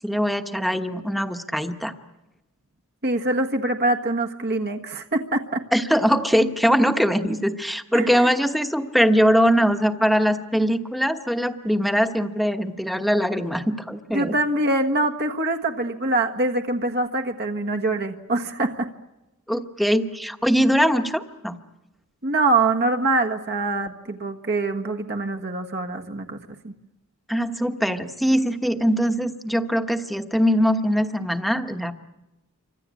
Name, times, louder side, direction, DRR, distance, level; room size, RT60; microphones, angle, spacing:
voice 1, 0.0-1.9 5.7-14.3 19.5-21.6 27.3-31.9, equal, ahead, 7 dB, 1.2 m, -22 dB
voice 2, 3.0-5.6 7.9-8.3 14.1-18.9 22.2-26.7, right 2 dB, 50° right, 4 dB, 1.5 m, -24 dB
28.5 x 25.0 x 8.4 m, 1.0 s
head